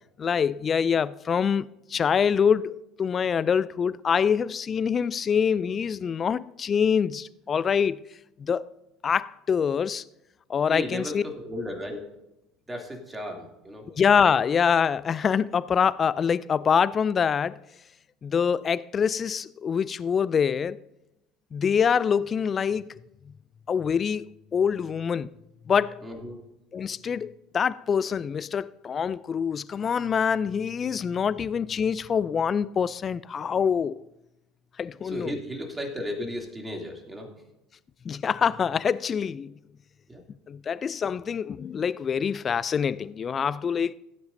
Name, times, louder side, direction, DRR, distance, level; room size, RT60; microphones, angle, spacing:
voice 1, 0.2-8.0 8.4-8.7 9.0-10.0 10.5-11.2 13.9-17.6 18.2-20.8 21.5-22.9 23.7-25.3 25.7-26.0 26.7-34.0 34.8-35.3 38.0-39.5 40.5-43.9, left 7 dB, 35° left, 0.3 m, -25 dB
voice 2, 10.7-12.1 12.7-13.9 26.0-26.4 35.0-37.3 40.1-40.2, equal, 15° right, 2.7 m, -35 dB
17.0 x 9.4 x 2.7 m
hypercardioid pair, 70°, 0 cm